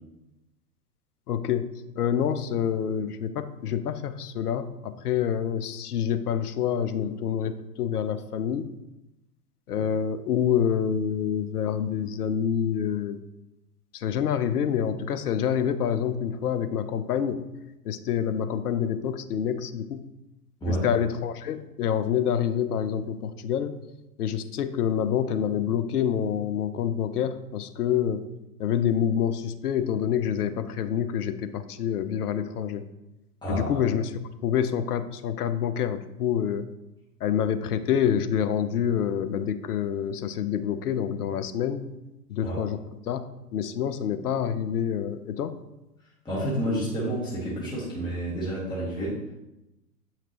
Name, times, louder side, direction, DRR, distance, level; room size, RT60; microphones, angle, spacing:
voice 1, 1.3-1.7 2.0-8.7 9.7-13.2 13.9-17.4 17.8-20.0 20.7-23.8 24.2-28.2 28.6-32.8 33.5-34.1 34.4-36.7 37.2-41.9 42.3-42.8 43.1-43.2 43.5-45.6, left 8 dB, 70° left, 11 dB, 0.7 m, -27 dB
voice 2, 33.4-33.8 42.4-42.6 46.3-49.2, right 1 dB, 10° left, -7 dB, 1.7 m, -29 dB
7.8 x 5.9 x 3.0 m, 0.95 s
hypercardioid pair, 115°, 48 cm